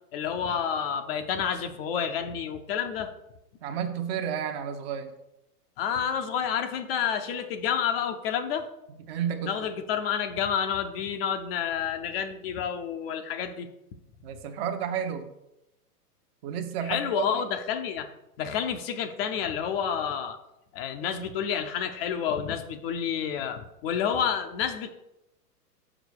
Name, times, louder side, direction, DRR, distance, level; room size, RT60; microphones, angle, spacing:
voice 1, 0.1-3.1 5.8-8.7 9.5-13.7 16.9-18.1 18.4-20.4 20.7-24.9, left 8 dB, 40° left, 7 dB, 0.7 m, -29 dB
voice 2, 3.6-5.1 9.1-9.7 14.2-15.3 16.4-17.4, right 8 dB, 40° right, 6 dB, 1.0 m, -31 dB
6.5 x 5.0 x 6.3 m, 0.89 s
hypercardioid pair, 115°, 48 cm